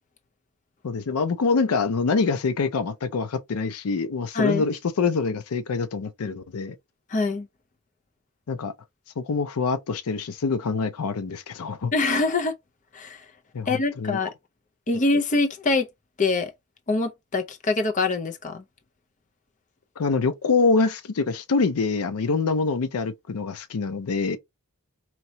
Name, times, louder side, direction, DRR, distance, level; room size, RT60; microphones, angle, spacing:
voice 1, 0.8-6.7 8.5-8.7 9.2-11.9 13.5-14.2 20.0-24.4, left 4 dB, 90° left, 0.5 m, -25 dB
voice 2, 4.3-4.7 7.1-7.5 11.9-12.5 12.9-13.2 13.7-14.3 14.9-15.9 16.2-16.5 16.9-18.6, left 3 dB, 35° left, 0.6 m, -24 dB
4.4 x 2.8 x 2.7 m
head